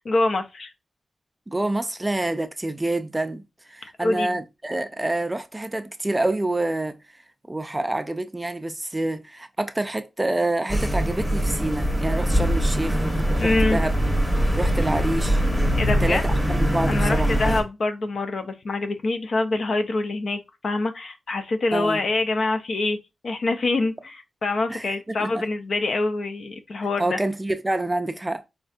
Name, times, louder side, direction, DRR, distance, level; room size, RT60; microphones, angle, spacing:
voice 1, 0.0-0.7 4.0-4.3 13.4-13.8 15.8-16.2 16.8-23.0 23.2-27.2, left 2 dB, 65° left, 0.5 m, -25 dB
voice 2, 1.5-3.4 3.7-7.0 7.5-13.9 14.6-15.4 16.0-17.6 21.7-22.0 24.7-24.8 25.2-25.4 27.0-28.4, right 2 dB, 15° right, 0.4 m, -27 dB
sound 1, 10.7-17.6, equal, 10° left, 1.0 m, -22 dB
4.3 x 2.6 x 2.4 m
wide cardioid pair, 100°, 0 cm